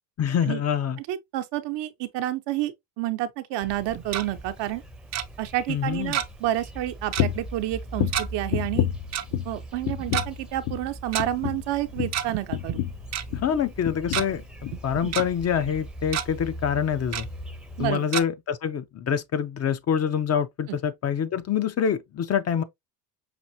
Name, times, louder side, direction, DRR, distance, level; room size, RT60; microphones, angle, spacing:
voice 1, 0.2-1.0 5.7-6.2 13.3-17.3 17.8-22.6, left 8 dB, 35° left, 0.6 m, -26 dB
voice 2, 1.0-4.8 5.4-8.9 9.4-12.8 13.5-13.6 15.0-15.2 17.8-18.0 20.7-20.8, right 14 dB, 65° right, 0.8 m, -29 dB
sound 1, 3.6-17.9, right 1 dB, ahead, 0.7 m, -41 dB
Tick-tock, 3.8-4.2 5.1-5.2 6.1-6.5 6.7-6.8 7.1-7.3 8.1-8.3 9.1-9.2 10.0-10.3 11.1-11.2 12.0-12.4 12.7-12.8 13.1-13.2 13.8-14.2 14.7-15.2 15.7-15.8 16.1-16.3 17.1-17.2 18.1-18.2, right 10 dB, 40° right, 0.5 m, -28 dB
sound 2, 7.2-7.5 7.9-9.6 9.8-10.4 10.6-10.9 11.2-13.6 13.8-14.3 14.6-14.8 15.2-15.3, left 13 dB, 75° left, 0.6 m, -29 dB
5.9 x 2.6 x 2.7 m
supercardioid pair, 100°, 45 cm